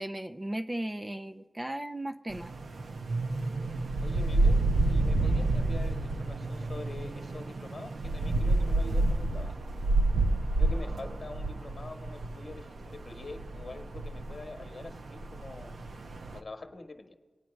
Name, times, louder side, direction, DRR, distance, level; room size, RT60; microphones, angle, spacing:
voice 1, 0.0-2.5, right 1 dB, 20° right, 7 dB, 0.5 m, -36 dB
sound 1, 2.3-16.4, right 2 dB, 60° right, 0.7 m, -29 dB
voice 2, 4.0-9.6 10.6-15.7 16.3-17.1, left 2 dB, 40° left, 5 dB, 1.2 m, -45 dB
24.5 x 9.1 x 3.1 m, 1.3 s
cardioid pair, 70°, 0 cm